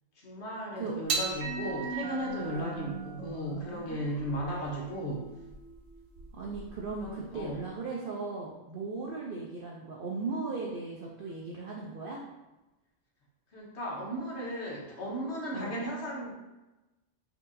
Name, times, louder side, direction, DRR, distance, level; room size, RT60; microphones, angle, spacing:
voice 1, 0.2-5.3 7.0-7.6 13.5-16.4, equal, 55° left, -3 dB, 1.0 m, -36 dB
sound 1, 1.1-7.6, right 4 dB, 70° right, 0.9 m, -38 dB
voice 2, 6.3-12.2 15.5-15.7, right 3 dB, 90° right, -2 dB, 0.4 m, -37 dB
4.4 x 2.7 x 2.6 m, 1.0 s
omnidirectional pair, 1.5 m